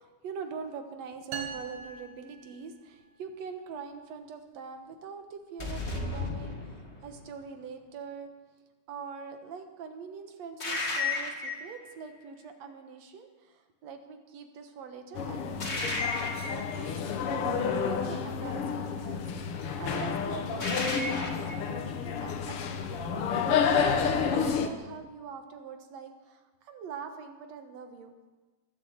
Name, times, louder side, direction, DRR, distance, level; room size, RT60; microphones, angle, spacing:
voice 1, 0.0-8.3 8.9-16.0 16.4-17.0 17.7-28.1, right 6 dB, 65° right, 6 dB, 2.4 m, -43 dB
sound 1, 1.3-3.1, right 7 dB, 90° right, 3.1 m, -41 dB
sound 2, 5.6-7.2 10.6-11.8 15.6-16.7 20.6-21.5, left 3 dB, 25° left, 1.9 m, -33 dB
sound 3, 15.1-24.7, left 6 dB, 60° left, 1.6 m, -30 dB
20.5 x 7.7 x 7.9 m, 1.3 s
omnidirectional pair, 3.5 m